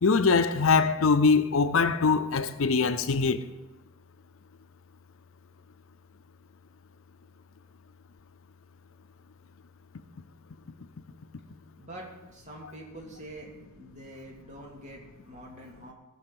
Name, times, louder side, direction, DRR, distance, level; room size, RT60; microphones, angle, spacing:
voice 1, 0.0-3.4, left 4 dB, 75° left, 0.6 m, -23 dB
voice 2, 11.8-13.5 13.8-15.9, right 1 dB, 35° right, 2.5 m, -45 dB
15.5 x 5.4 x 6.9 m
head